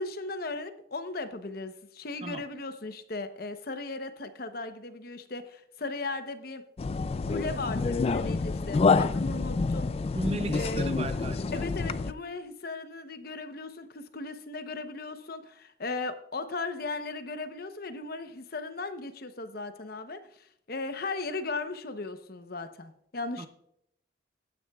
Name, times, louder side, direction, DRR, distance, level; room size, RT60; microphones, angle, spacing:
voice 1, 0.0-6.6 7.3-9.9 10.5-10.9 11.5-23.5, left 3 dB, 55° left, 9 dB, 0.9 m, -37 dB
sound 1, 6.8-12.1, left 4 dB, 35° left, 0.3 m, -27 dB
voice 2, 10.1-11.5 23.4-23.5, right 2 dB, 30° right, 10 dB, 0.7 m, -35 dB
16.0 x 9.5 x 2.4 m, 0.74 s
head